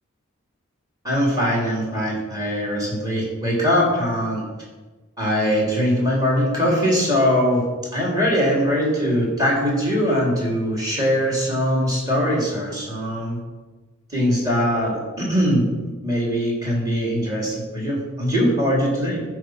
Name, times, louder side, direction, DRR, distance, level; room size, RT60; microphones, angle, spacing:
voice 1, 1.0-4.4 5.2-7.7 7.9-13.4 14.1-19.2, equal, 15° right, -4 dB, 3.4 m, -21 dB
14.0 x 5.0 x 6.4 m, 1.3 s
head